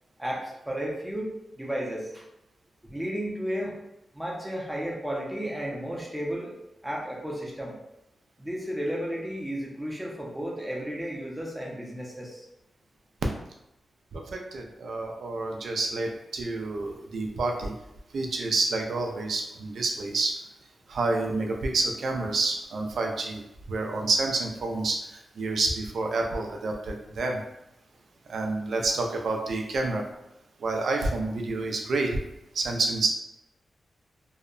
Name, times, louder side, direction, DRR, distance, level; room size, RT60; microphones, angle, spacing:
voice 1, 0.2-2.2 2.8-3.8 4.1-6.5 6.8-7.8 8.4-12.5, equal, 5° right, -3 dB, 0.6 m, -33 dB
voice 2, 14.1-17.7 18.1-20.3 20.9-23.4 23.7-25.0 25.4-27.4 28.3-30.0 30.6-32.2 32.5-33.1, right 3 dB, 70° right, 2 dB, 0.4 m, -28 dB
2.7 x 2.1 x 2.4 m, 0.88 s
wide cardioid pair, 135°, 0 cm